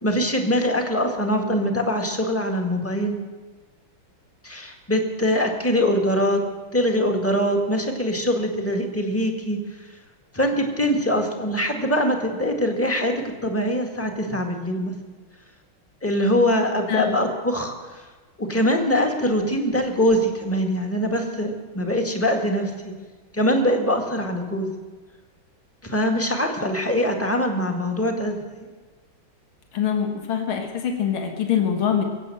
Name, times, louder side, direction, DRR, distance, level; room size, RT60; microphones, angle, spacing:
voice 1, 0.0-3.2 4.4-6.4 6.7-9.6 10.3-14.9 16.0-18.0 18.4-22.9 23.3-24.7 25.8-28.7, equal, 5° left, 2 dB, 1.5 m, -23 dB
voice 2, 29.7-32.0, left 8 dB, 80° left, 3 dB, 2.5 m, -24 dB
22.5 x 8.2 x 7.8 m, 1.3 s
omnidirectional pair, 2.3 m